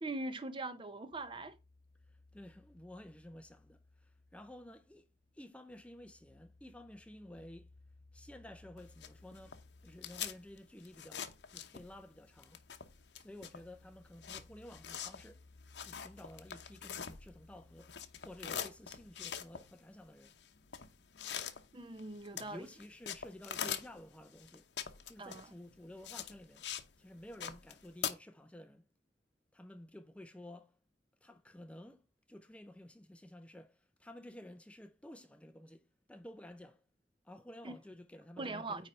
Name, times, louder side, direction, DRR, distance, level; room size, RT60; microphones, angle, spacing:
voice 1, 0.0-1.6 21.7-22.7 25.2-25.5 37.6-37.7 38.4-38.9, right 2 dB, 30° right, 0.8 m, -41 dB
sound 1, 1.1-19.5, left 2 dB, 50° left, 1.4 m, -63 dB
voice 2, 2.1-7.7 8.1-12.6 13.2-15.5 15.8-18.0 18.2-20.4 22.3-24.7 25.1-26.7 27.0-28.9 29.5-30.8 31.2-36.8 37.2-38.9, left 1 dB, 5° left, 0.5 m, -53 dB
sound 2, 8.8-12.1 12.4-17.5 17.8-26.9 27.2-28.1, left 9 dB, 75° left, 0.9 m, -43 dB
9.6 x 3.3 x 5.3 m
head